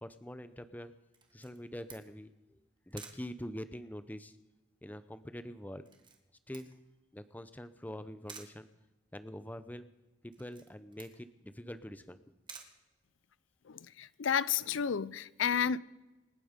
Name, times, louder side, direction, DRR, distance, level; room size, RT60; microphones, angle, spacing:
voice 1, 0.0-0.9 1.3-2.6 2.9-4.4 4.8-5.9 6.5-6.8 7.1-8.7 9.1-9.9 10.2-12.3, equal, 10° left, 0.6 m, -45 dB
Camera, 1.1-13.6, right 5 dB, 25° right, 1.8 m, -56 dB
voice 2, 13.7-15.8, left 7 dB, 75° left, 0.5 m, -31 dB
27.0 x 9.1 x 5.1 m
head